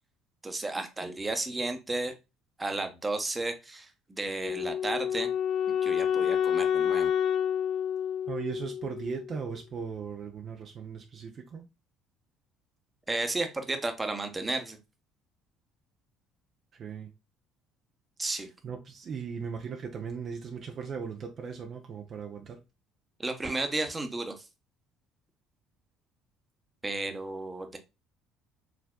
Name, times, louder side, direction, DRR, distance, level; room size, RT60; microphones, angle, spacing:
voice 1, 0.4-2.1 2.6-5.3 5.8-7.1 13.1-14.8 18.2-18.5 23.2-24.3 26.8-27.8, right 2 dB, 20° right, 0.9 m, -33 dB
Wind instrument woodwind instrument, 4.4-9.5, left 9 dB, 45° left, 0.4 m, -29 dB
voice 2, 8.3-11.6 16.7-17.1 18.6-22.6, right 6 dB, 45° right, 0.6 m, -38 dB
4.9 x 3.4 x 2.2 m
hypercardioid pair, 60°, 0 cm